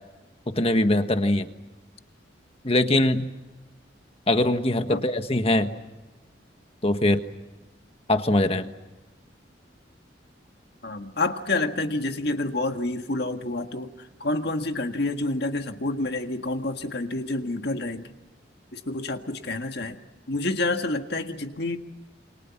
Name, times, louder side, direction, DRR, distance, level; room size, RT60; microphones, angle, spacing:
voice 1, 0.6-1.5 2.6-3.3 4.3-5.7 6.8-7.2 8.1-8.6, left 1 dB, 30° left, 8 dB, 1.4 m, -22 dB
voice 2, 10.8-18.1 18.7-20.0 20.3-21.8, left 2 dB, 60° left, 6 dB, 1.8 m, -28 dB
28.5 x 26.5 x 6.0 m, 1.1 s
head